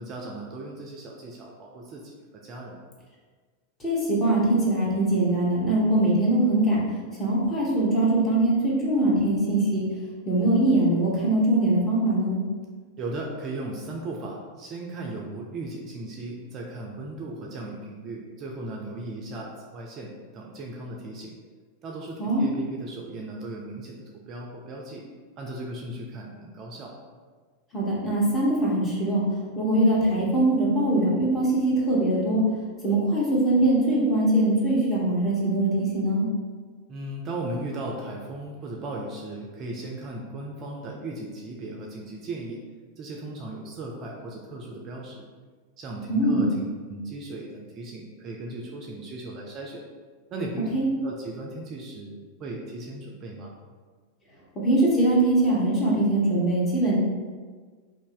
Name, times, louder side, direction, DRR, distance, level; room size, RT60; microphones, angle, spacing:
voice 1, 0.0-2.8 13.0-21.4 21.8-25.0 25.4-26.9 36.9-42.6 43.0-45.3 45.8-49.8 50.3-50.7 51.0-53.5, right 2 dB, 35° right, -1 dB, 0.4 m, -37 dB
voice 2, 3.8-6.8 7.2-9.9 10.2-12.4 22.2-22.5 27.7-32.5 32.8-36.3 46.1-46.4 50.7-50.9 54.5-57.0, right 1 dB, 20° left, -6 dB, 1.0 m, -22 dB
2.6 x 2.5 x 3.7 m, 1.5 s
figure-of-eight pair, 90°, 0 cm